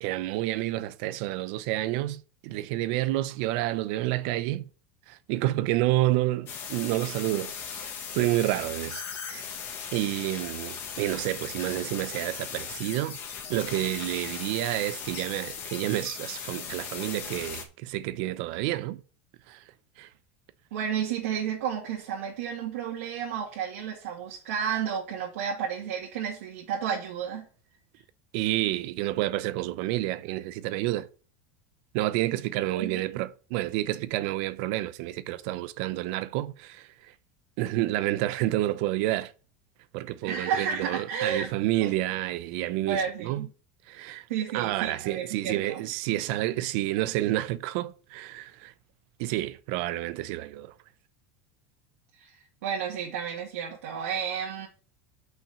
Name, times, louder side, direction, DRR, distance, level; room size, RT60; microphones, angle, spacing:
voice 1, 0.0-4.7 5.1-7.8 8.1-9.5 9.9-13.2 13.5-19.0 19.5-19.6 20.0-20.1 28.3-31.1 31.9-36.9 37.6-39.3 39.9-43.5 43.9-44.3 44.5-48.7 49.2-50.7, right 16 dB, 55° right, 0.6 m, -29 dB
sound 1, 6.5-17.6, left 7 dB, 30° left, 1.6 m, -38 dB
voice 2, 20.7-27.5 32.5-33.3 40.2-41.5 41.8-41.9 42.8-43.5 44.3-45.8 52.2-52.3 52.6-54.7, right 8 dB, 85° right, 2.1 m, -32 dB
5.9 x 5.5 x 6.9 m
supercardioid pair, 170°, 7 cm